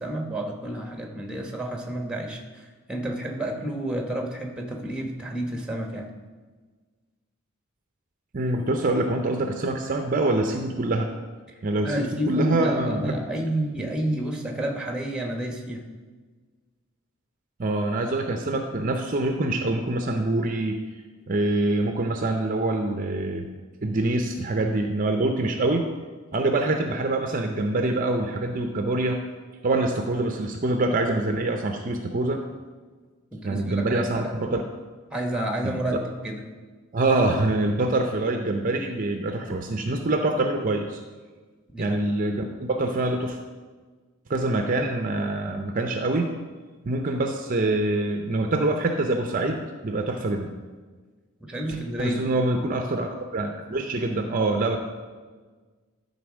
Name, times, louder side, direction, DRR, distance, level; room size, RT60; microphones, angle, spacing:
voice 1, 0.0-6.1 11.8-15.8 33.3-34.4 35.1-36.4 41.7-42.0 51.4-52.3, right 1 dB, 5° right, 2 dB, 1.0 m, -30 dB
voice 2, 8.3-11.1 11.6-13.2 13.8-13.9 17.6-20.8 21.3-23.5 23.8-25.9 26.3-29.2 29.6-32.4 33.4-34.6 35.6-35.8 36.9-41.0 41.8-43.4 44.3-46.3 46.8-50.5 51.7-54.8, right 2 dB, 40° right, 4 dB, 0.6 m, -25 dB
12.0 x 4.0 x 6.1 m, 1.4 s
head